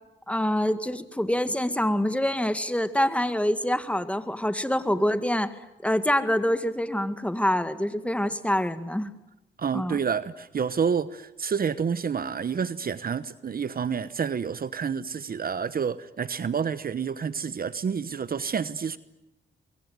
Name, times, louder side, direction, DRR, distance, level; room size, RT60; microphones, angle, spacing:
voice 1, 0.3-5.5 5.8-9.1 9.7-10.0, left 1 dB, 5° left, 10 dB, 2.0 m, -26 dB
voice 2, 9.6-19.0, right 6 dB, 50° right, 15 dB, 1.0 m, -29 dB
24.5 x 23.0 x 9.4 m, 0.94 s
cardioid pair, 65°, 19 cm